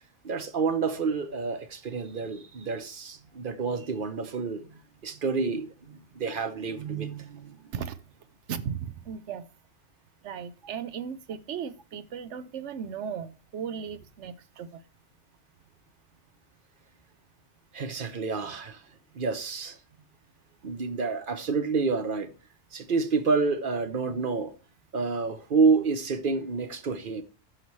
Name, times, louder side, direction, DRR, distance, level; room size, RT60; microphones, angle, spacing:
voice 1, 0.2-7.7 17.7-18.8 19.1-19.8 20.6-22.3 22.7-24.5 24.9-27.2, right 4 dB, 50° right, 0.9 m, -29 dB
voice 2, 8.5-9.4 10.2-14.8, right 7 dB, 80° right, 1.0 m, -36 dB
13.5 x 5.9 x 3.1 m
omnidirectional pair, 1.2 m